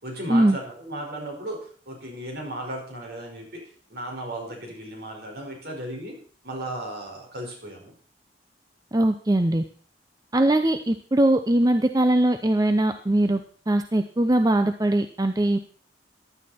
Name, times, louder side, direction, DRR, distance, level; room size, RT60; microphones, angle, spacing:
voice 1, 0.0-3.6 3.9-6.2 6.4-7.9, right 1 dB, 60° right, 1 dB, 5.2 m, -35 dB
voice 2, 8.9-9.6 10.3-13.4 13.7-15.6, right 1 dB, 20° right, 8 dB, 0.6 m, -21 dB
15.0 x 11.0 x 4.3 m, 0.44 s
head